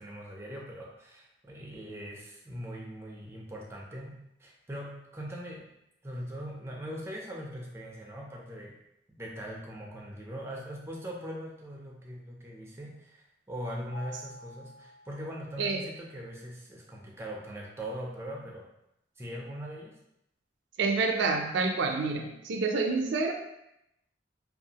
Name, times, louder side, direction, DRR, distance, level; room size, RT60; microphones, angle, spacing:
voice 1, 0.0-5.7 6.0-8.8 9.2-18.7 19.2-19.9, equal, 15° right, -2 dB, 0.4 m, -41 dB
Mallet percussion, 13.9-15.9, left 3 dB, 25° left, 0.8 m, -50 dB
voice 2, 20.8-23.3, right 4 dB, 80° right, 4 dB, 0.4 m, -28 dB
2.6 x 2.3 x 2.7 m, 0.83 s
head